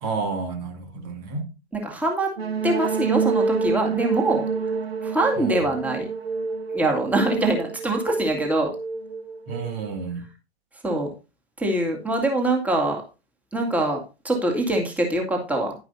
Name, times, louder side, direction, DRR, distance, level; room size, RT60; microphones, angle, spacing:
voice 1, 0.0-1.4 9.5-10.2, right 4 dB, 40° right, 2.2 m, -30 dB
voice 2, 1.7-2.3 2.6-4.4 5.0-6.1 6.7-8.7 10.8-11.1 11.6-13.0 13.5-14.0 14.2-15.7, right 2 dB, 5° right, 2.2 m, -23 dB
sound 1, 2.4-10.1, right 4 dB, 65° right, 1.6 m, -28 dB
11.0 x 10.5 x 2.7 m
figure-of-eight pair, 105°, 33 cm